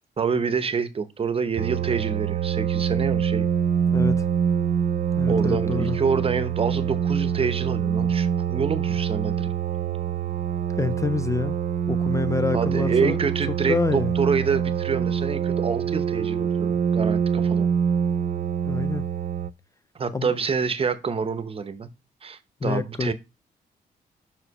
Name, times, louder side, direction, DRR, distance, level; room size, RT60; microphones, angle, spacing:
voice 1, 0.2-3.5 5.3-9.5 12.5-17.7 19.9-21.9 22.2-23.1, right 5 dB, 35° right, 0.8 m, -27 dB
sound 1, 1.6-19.5, right 8 dB, 50° right, 0.5 m, -25 dB
voice 2, 3.9-4.3 5.2-6.0 10.8-11.6 11.9-13.2 13.7-14.1 18.6-19.0 20.1-20.3 22.6-23.1, left 4 dB, 20° left, 0.3 m, -27 dB
5.9 x 4.9 x 4.7 m
cardioid pair, 115°, 17 cm